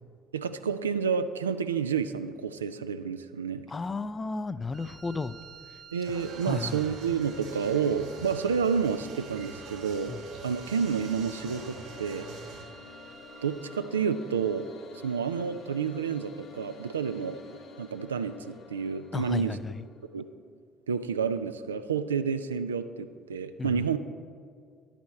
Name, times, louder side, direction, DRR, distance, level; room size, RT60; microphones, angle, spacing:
voice 1, 0.3-3.6 5.9-10.1 10.4-12.3 13.4-14.7 15.0-17.4 17.8-19.6 20.1-20.2 20.9-24.0, right 6 dB, 85° right, 10 dB, 0.3 m, -29 dB
voice 2, 3.7-5.4 6.4-6.8 10.1-10.2 19.1-19.7 23.6-23.8, left 3 dB, 30° left, 14 dB, 0.4 m, -33 dB
Wind instrument woodwind instrument, 4.7-14.0, right 5 dB, 40° right, 0.7 m, -52 dB
sound 1, 6.0-12.6, right 3 dB, 70° right, 2.3 m, -45 dB
sound 2, 9.8-20.1, left 3 dB, 60° left, 1.8 m, -50 dB
10.5 x 8.4 x 4.3 m, 2.2 s
figure-of-eight pair, 50°, 0 cm